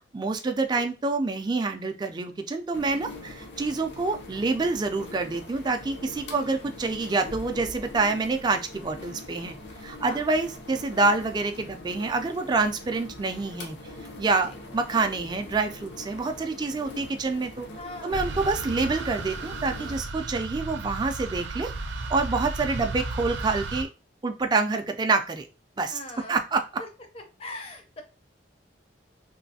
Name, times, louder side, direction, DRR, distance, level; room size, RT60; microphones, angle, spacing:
voice 1, 0.1-9.6 9.8-13.8 14.2-17.7 18.0-21.7 22.1-23.9 24.2-25.5 25.8-26.6, right 3 dB, 25° right, 6 dB, 0.3 m, -27 dB
sound 1, 2.7-20.0, left 2 dB, 75° left, 0.6 m, -43 dB
voice 2, 6.2-6.7 10.1-10.2 14.5-14.6 17.8-18.2 25.9-26.4 26.8-26.9 27.1-28.0, left 2 dB, 35° left, 5 dB, 0.5 m, -41 dB
sound 2, 18.1-23.8, right 3 dB, 85° right, 0.5 m, -34 dB
3.1 x 2.5 x 2.7 m, 0.32 s
head